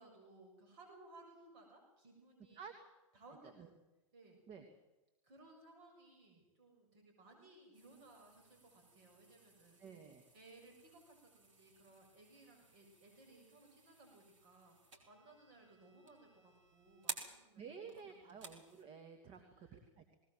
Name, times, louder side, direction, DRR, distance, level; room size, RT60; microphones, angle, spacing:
voice 1, 0.0-2.7 3.1-3.7 4.1-4.4 5.2-9.8 10.3-14.8 15.1-18.4 19.3-19.8, right 2 dB, 50° right, 2 dB, 7.4 m, -62 dB
sound 1, 7.7-18.8, right 3 dB, 70° right, 5.3 m, -54 dB
voice 2, 9.8-10.2 17.6-20.2, right 6 dB, 30° right, 6 dB, 2.4 m, -53 dB
19.5 x 19.0 x 7.8 m, 1.0 s
hypercardioid pair, 105°, 17 cm